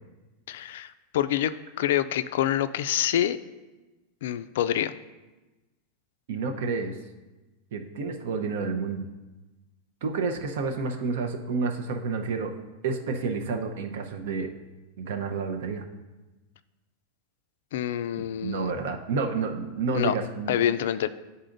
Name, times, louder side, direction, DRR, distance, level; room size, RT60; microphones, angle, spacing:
voice 1, 0.5-3.4 4.2-4.9 17.7-18.7 19.9-20.1 20.5-21.1, left 11 dB, 75° left, 13 dB, 0.3 m, -26 dB
voice 2, 6.3-7.0 7.7-9.0 10.0-12.5 12.8-14.5 15.0-15.8 18.4-20.6, right 4 dB, 70° right, 4 dB, 0.8 m, -29 dB
11.5 x 4.1 x 2.6 m, 1.1 s
supercardioid pair, 155°, 0 cm